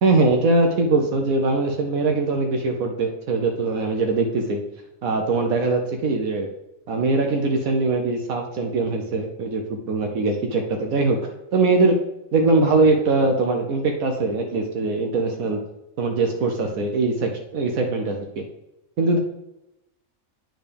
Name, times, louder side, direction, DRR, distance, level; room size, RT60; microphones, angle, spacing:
voice 1, 0.0-4.6 5.0-6.5 6.9-11.2 11.5-12.0 12.3-15.6 16.0-18.4 19.0-19.2, right 3 dB, 85° right, 3 dB, 1.3 m, -21 dB
9.0 x 3.8 x 5.1 m, 0.90 s
omnidirectional pair, 1.4 m